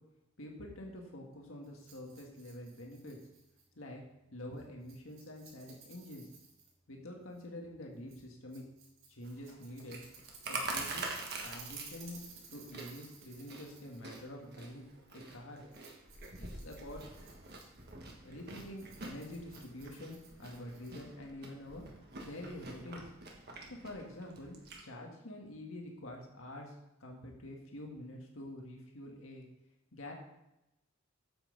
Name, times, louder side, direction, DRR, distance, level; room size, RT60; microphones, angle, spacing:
voice 1, 0.4-3.2 3.8-4.0 4.3-6.3 6.9-8.6 9.1-10.0 10.4-11.1 11.4-12.2 12.5-14.8 15.1-15.6 16.4-17.0 18.2-21.9 22.2-23.1 23.7-26.7 27.0-29.5 29.9-30.1, left 1 dB, 85° left, 0 dB, 1.8 m, -47 dB
Rattle, 1.6-21.2, right 4 dB, 85° right, 3.5 m, -57 dB
Chewing mastication, 9.2-24.8, right 3 dB, 50° right, 1.5 m, -46 dB
8.8 x 7.5 x 3.9 m, 0.90 s
head